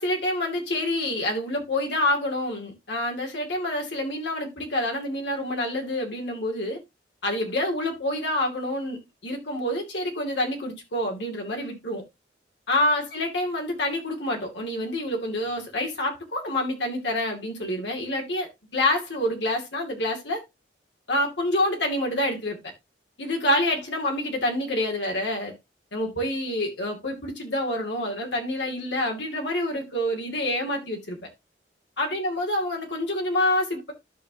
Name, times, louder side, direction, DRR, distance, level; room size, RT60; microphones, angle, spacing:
voice 1, 0.0-6.8 7.2-12.0 12.7-20.4 21.1-22.6 23.2-25.5 25.9-31.2 32.0-33.9, left 1 dB, 80° left, 2.5 m, -27 dB
12.5 x 5.7 x 2.9 m
head